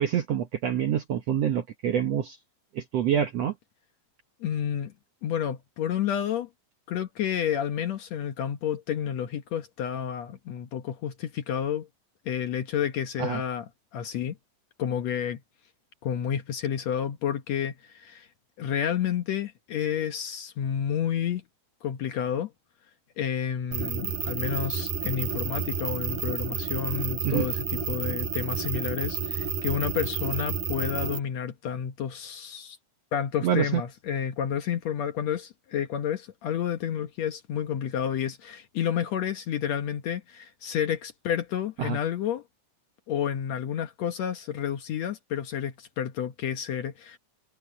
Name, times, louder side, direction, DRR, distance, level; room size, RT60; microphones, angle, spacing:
voice 1, 0.0-2.4 2.7-3.5 13.2-13.4 27.2-27.5 33.4-33.8 41.8-42.0, right 9 dB, 80° right, 1.4 m, -26 dB
voice 2, 4.4-4.9 5.2-6.5 6.9-11.9 12.2-14.4 14.8-15.4 16.0-18.3 18.6-21.4 21.8-22.5 23.2-32.8 33.1-42.4 43.1-47.2, left 9 dB, 70° left, 1.6 m, -30 dB
sound 1, 23.7-31.2, right 7 dB, 55° right, 5.3 m, -30 dB
omnidirectional pair, 4.5 m